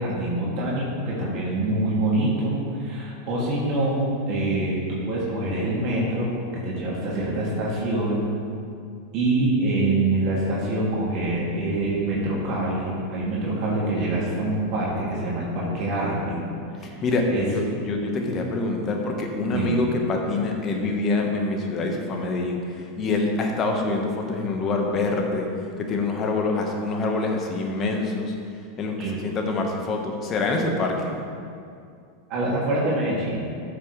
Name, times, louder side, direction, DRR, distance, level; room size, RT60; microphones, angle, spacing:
voice 1, 0.0-8.3 9.1-16.4 16.8-17.0 17.3-17.5 19.5-19.9 29.0-29.1 32.3-33.5, right 2 dB, 45° right, -6 dB, 2.6 m, -25 dB
voice 2, 17.5-25.5 25.8-28.3 28.8-28.9 29.2-31.1, left 3 dB, 35° left, 2 dB, 1.5 m, -25 dB
13.5 x 6.8 x 3.4 m, 2.4 s
figure-of-eight pair, 90°, 0 cm